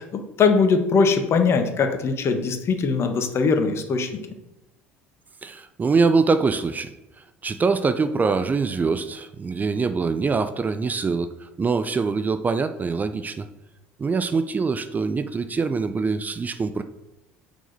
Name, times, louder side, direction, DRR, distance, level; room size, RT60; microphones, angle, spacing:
voice 1, 0.0-4.1, left 5 dB, 40° left, 7 dB, 1.4 m, -21 dB
voice 2, 5.4-6.9 7.4-13.5 14.0-16.8, right 4 dB, 25° right, 10 dB, 0.7 m, -24 dB
6.7 x 6.3 x 6.6 m, 0.91 s
figure-of-eight pair, 65°, 7 cm